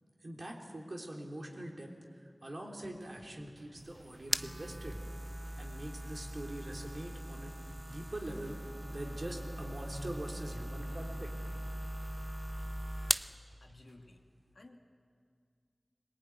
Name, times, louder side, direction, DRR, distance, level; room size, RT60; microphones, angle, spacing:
voice 1, 0.2-5.0 5.6-7.6 7.9-8.6 8.9-11.3, right 1 dB, 55° right, 0 dB, 3.3 m, -43 dB
sound 1, 2.8-13.9, right 1 dB, 80° right, 5.2 m, -62 dB
sound 2, 3.8-13.4, right 1 dB, 25° right, 0.6 m, -40 dB
voice 2, 13.6-14.3 14.5-14.8, left 2 dB, 70° left, 2 dB, 2.0 m, -56 dB
21.5 x 20.0 x 9.5 m, 2.1 s
wide cardioid pair, 50°, 0 cm